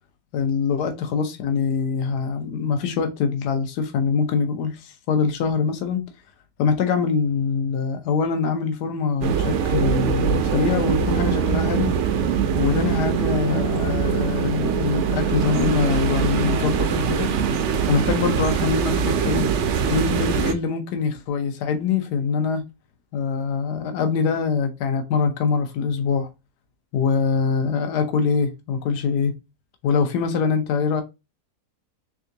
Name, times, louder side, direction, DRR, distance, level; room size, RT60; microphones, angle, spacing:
voice 1, 0.3-6.0 6.6-11.9 12.6-17.3 17.9-19.5 19.9-22.6 23.1-26.3 26.9-29.4 29.8-31.0, left 5 dB, 80° left, 1.3 m, -23 dB
sound 1, 9.2-20.5, right 7 dB, 75° right, 0.6 m, -22 dB
3.6 x 3.4 x 2.7 m
omnidirectional pair, 1.8 m